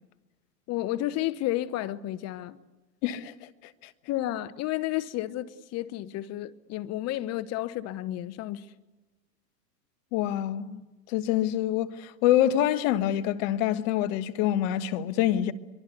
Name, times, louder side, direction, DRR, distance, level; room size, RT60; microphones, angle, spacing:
voice 1, 0.7-2.6 4.1-8.7, left 14 dB, 30° left, 1.0 m, -31 dB
voice 2, 3.0-3.5 3.8-3.9 10.1-10.8 11.1-15.5, left 12 dB, 50° left, 1.5 m, -26 dB
24.0 x 23.0 x 8.2 m
hypercardioid pair, 115°, 50 cm